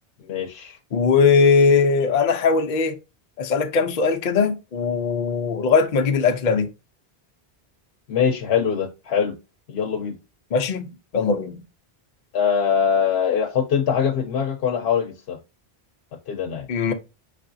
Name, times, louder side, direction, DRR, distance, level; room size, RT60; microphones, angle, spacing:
voice 1, 0.2-0.8 8.1-9.3 9.7-10.2 12.3-15.4 16.3-16.7, left 7 dB, 85° left, 0.9 m, -23 dB
voice 2, 0.9-3.0 3.4-6.7 10.5-11.6 16.7-16.9, left 5 dB, 55° left, 0.7 m, -20 dB
4.9 x 3.4 x 2.6 m
omnidirectional pair, 1.1 m